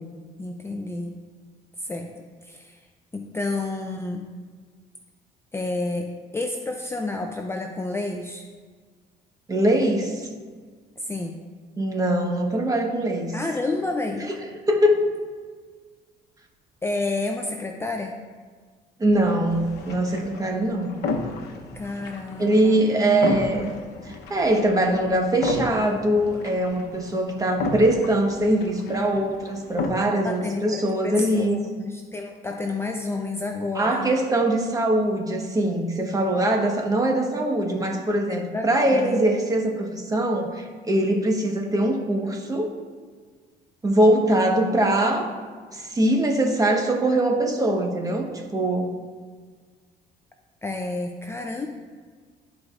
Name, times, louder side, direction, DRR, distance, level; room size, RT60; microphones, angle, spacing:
voice 1, 0.4-1.2 1.8-2.1 2.4-2.8 3.1-4.3 5.5-8.5 11.0-11.4 13.3-14.2 16.8-18.2 21.7-22.9 30.2-34.1 38.3-39.2 50.6-51.7, left 2 dB, 15° left, 3 dB, 0.5 m, -30 dB
voice 2, 9.5-10.3 11.8-13.4 14.1-14.4 14.7-15.1 19.0-20.9 22.4-23.7 24.0-31.6 33.7-42.7 43.8-45.3 45.7-49.0, right 1 dB, 20° right, 2 dB, 1.2 m, -22 dB
sound 1, 19.1-29.9, left 3 dB, 75° left, 0.9 m, -33 dB
13.0 x 4.8 x 2.5 m, 1.6 s
cardioid pair, 110°, 17 cm